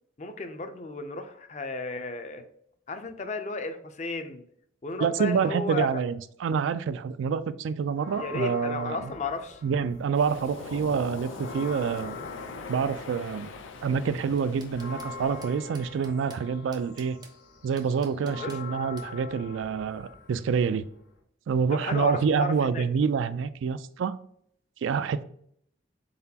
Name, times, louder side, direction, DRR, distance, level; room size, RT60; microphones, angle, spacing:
voice 1, 0.2-2.4 2.9-4.4 4.8-5.9 8.2-9.6 18.2-18.6 21.7-22.9, left 3 dB, 35° left, 0.4 m, -34 dB
voice 2, 5.0-9.1 9.6-12.2 12.7-13.5 13.8-17.2 17.6-20.9 21.5-24.2 24.8-25.2, right 6 dB, 85° right, 0.3 m, -27 dB
sound 1, 8.0-10.3 10.7-21.2, left 4 dB, 65° left, 1.3 m, -44 dB
Waves surf, 10.1-15.6, left 4 dB, 90° left, 0.5 m, -42 dB
sound 2, 14.2-15.1 15.4-16.4 16.7-17.4 17.8-18.6 19.0-19.1, right 4 dB, 20° right, 0.5 m, -50 dB
4.0 x 3.9 x 2.8 m
head